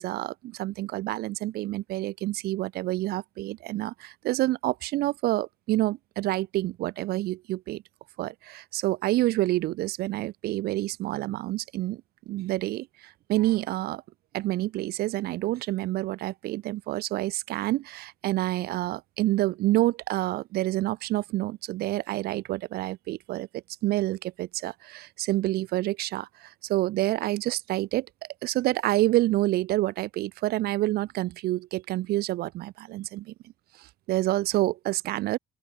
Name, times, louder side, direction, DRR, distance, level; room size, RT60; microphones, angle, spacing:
voice 1, 0.0-7.8 8.2-14.0 14.3-28.1 28.4-33.3 33.8-35.4, right 16 dB, 65° right, 0.5 m, -28 dB
open air
cardioid pair, 110°, 17 cm